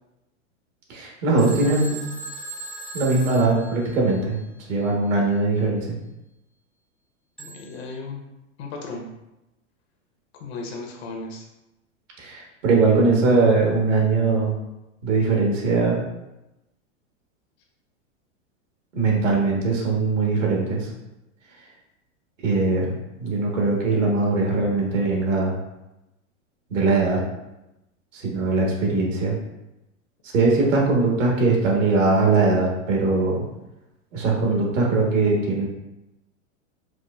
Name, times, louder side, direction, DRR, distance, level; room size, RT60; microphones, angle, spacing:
voice 1, 0.9-2.0 2.9-4.4 4.7-6.0 12.2-14.5 15.0-16.0 18.9-20.9 22.4-25.6 26.7-27.2 28.1-29.4 30.3-33.4 34.1-35.7, right 3 dB, 80° right, -2 dB, 1.3 m, -21 dB
Telephone, 1.4-4.4 7.4-7.8, right 3 dB, ahead, 0.5 m, -38 dB
voice 2, 7.4-8.2 8.6-9.1 10.4-11.4, left 3 dB, 55° left, 1 dB, 0.9 m, -35 dB
4.7 x 2.1 x 2.3 m, 0.93 s
hypercardioid pair, 110°, 37 cm